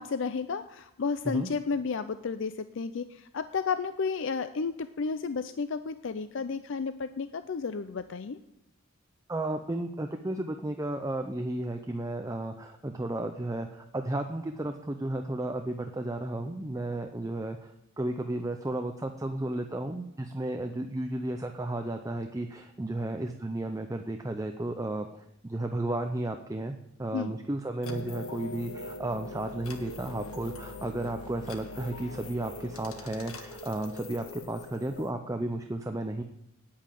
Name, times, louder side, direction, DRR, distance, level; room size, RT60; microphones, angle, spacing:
voice 1, 0.0-8.4 27.1-27.3, left 5 dB, 60° left, 11 dB, 0.4 m, -32 dB
voice 2, 9.3-36.2, right 1 dB, 15° right, 5 dB, 0.5 m, -33 dB
sound 1, 27.8-35.1, left 3 dB, 85° left, 1.5 m, -42 dB
9.7 x 8.7 x 7.5 m, 0.84 s
head